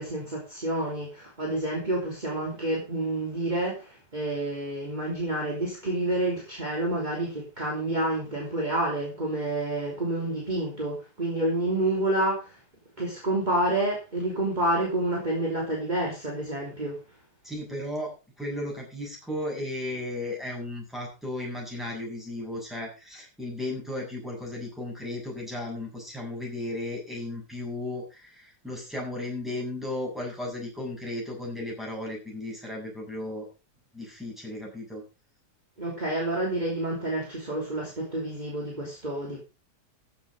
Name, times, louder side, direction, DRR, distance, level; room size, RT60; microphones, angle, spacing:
voice 1, 0.0-12.6 13.0-17.0 35.8-39.4, right 1 dB, 25° right, 3.4 m, -29 dB
voice 2, 17.4-18.1 18.4-33.5 33.9-35.0, left 1 dB, ahead, 7.4 m, -35 dB
14.5 x 7.9 x 5.0 m
omnidirectional pair, 1.8 m